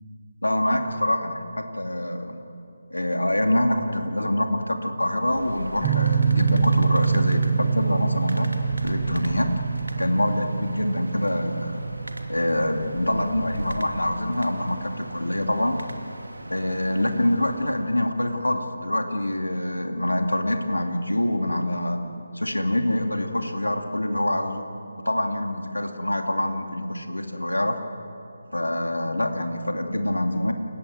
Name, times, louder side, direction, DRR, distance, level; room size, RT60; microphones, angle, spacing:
voice 1, 0.4-2.4 2.9-8.5 8.8-9.5 10.0-11.8 12.3-15.8 16.5-22.0 22.3-24.7 25.0-27.8 28.5-30.5, left 1 dB, 90° left, 4 dB, 2.5 m, -25 dB
sound 1, 5.2-18.2, right 1 dB, 85° right, 2.7 m, -38 dB
sound 2, 5.8-14.5, right 5 dB, 15° right, 0.9 m, -25 dB
29.0 x 18.5 x 7.9 m, 2.7 s
figure-of-eight pair, 155°, 0 cm